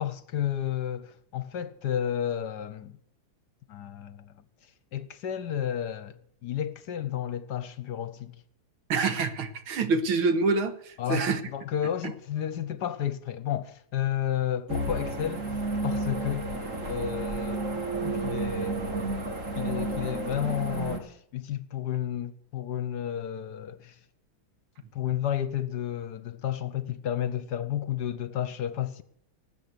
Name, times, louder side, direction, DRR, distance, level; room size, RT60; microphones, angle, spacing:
voice 1, 0.0-3.0 3.7-4.4 4.9-8.4 11.0-15.5 15.8-16.5 16.9-17.6 18.0-18.9 19.5-24.0 24.9-29.0, left 10 dB, 65° left, 1.2 m, -32 dB
voice 2, 8.9-11.4, right 4 dB, 85° right, 2.1 m, -26 dB
sound 1, 14.7-21.0, right 2 dB, 40° right, 2.6 m, -31 dB
19.0 x 8.2 x 8.1 m
omnidirectional pair, 2.2 m